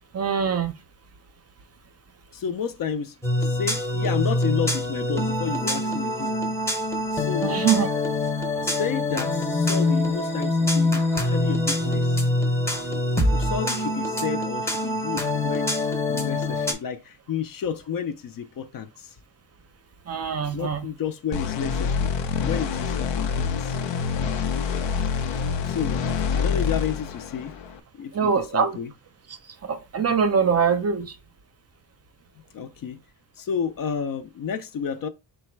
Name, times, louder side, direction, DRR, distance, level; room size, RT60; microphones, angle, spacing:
voice 1, 0.1-0.8 7.4-7.9 20.1-20.8 28.1-28.8 29.6-31.1, right 6 dB, 35° right, 0.5 m, -23 dB
voice 2, 2.3-6.3 7.1-7.6 8.6-12.2 13.3-15.8 16.1-19.1 20.5-22.1 22.4-23.8 25.6-26.0 26.3-27.5 28.0-28.9 32.5-33.0 33.4-35.1, left 7 dB, 55° left, 0.5 m, -31 dB
sound 1, 3.2-16.7, left 2 dB, 5° left, 0.7 m, -24 dB
sound 2, 21.3-27.8, left 6 dB, 90° left, 0.7 m, -26 dB
3.9 x 2.2 x 4.4 m
wide cardioid pair, 135°, 43 cm